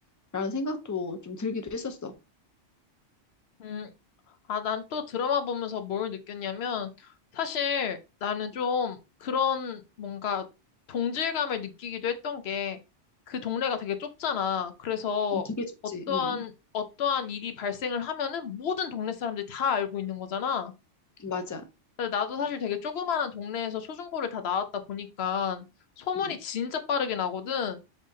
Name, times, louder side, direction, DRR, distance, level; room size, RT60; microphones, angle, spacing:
voice 1, 0.3-2.1 15.3-15.4 15.9-16.4 21.2-21.6 26.2-26.4, left 3 dB, 30° left, 7 dB, 0.3 m, -33 dB
voice 2, 3.6-3.9 4.5-10.4 10.9-12.8 13.3-15.5 16.1-20.7 22.0-25.6 26.0-27.8, left 7 dB, 65° left, 9 dB, 0.9 m, -30 dB
5.3 x 3.5 x 2.6 m, 0.27 s
omnidirectional pair, 1.2 m